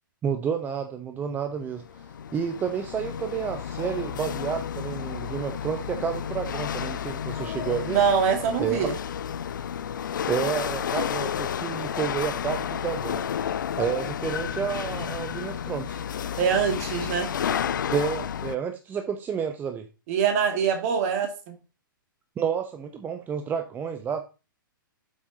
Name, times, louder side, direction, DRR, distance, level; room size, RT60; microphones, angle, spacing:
voice 1, 0.2-8.0 8.6-8.9 10.3-13.2 13.8-16.0 17.9-19.9 22.4-24.2, right 7 dB, 15° right, 7 dB, 0.6 m, -30 dB
Chatter / Hiss / Rattle, 1.7-18.6, left 8 dB, 60° left, 0.5 m, -31 dB
voice 2, 7.9-8.9 16.4-17.3 20.1-21.5, right 7 dB, 40° right, 6 dB, 2.1 m, -24 dB
8.0 x 5.9 x 3.8 m, 0.31 s
figure-of-eight pair, 115°, 12 cm